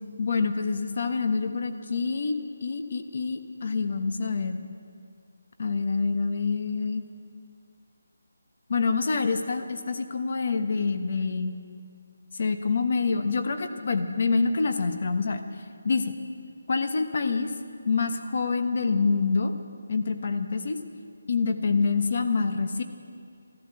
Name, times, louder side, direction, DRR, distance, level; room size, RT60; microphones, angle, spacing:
voice 1, 0.2-4.6 5.6-7.0 8.7-11.6 12.3-15.4 15.8-16.1 16.7-17.5 17.9-19.5 19.9-20.8 21.3-22.8, left 4 dB, 45° left, 8 dB, 1.1 m, -26 dB
14.0 x 12.5 x 8.0 m, 2.3 s
figure-of-eight pair, 170°, 0 cm